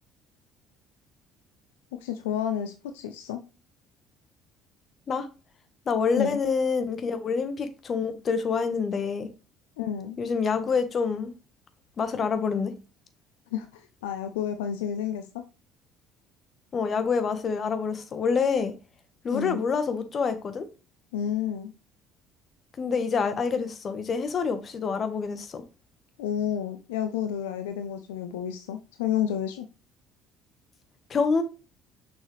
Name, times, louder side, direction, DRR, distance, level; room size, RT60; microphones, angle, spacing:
voice 1, 2.0-3.4 6.2-6.4 9.8-10.2 13.5-15.2 19.3-19.6 21.1-21.7 26.2-29.7, left 9 dB, 75° left, 0.6 m, -30 dB
voice 2, 5.9-9.3 10.2-11.3 12.0-12.7 16.7-18.7 19.2-20.7 22.8-25.6 31.1-31.4, left 5 dB, 40° left, 1.4 m, -27 dB
6.4 x 6.2 x 3.3 m
hypercardioid pair, 55°, 0 cm